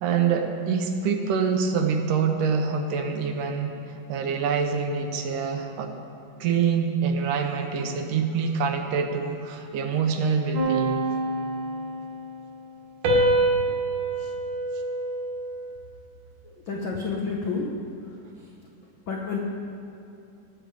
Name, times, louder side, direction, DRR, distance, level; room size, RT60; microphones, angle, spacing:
voice 1, 0.0-5.9 6.4-11.0 14.2-14.3, right 6 dB, 80° right, 5 dB, 2.4 m, -25 dB
sound 1, 10.5-12.3 13.0-15.7, right 2 dB, 60° right, 2.4 m, -26 dB
voice 2, 16.4-17.7 18.0-18.5 19.1-19.4, left 4 dB, 80° left, -1 dB, 1.1 m, -31 dB
19.0 x 7.7 x 4.8 m, 2.7 s
omnidirectional pair, 3.8 m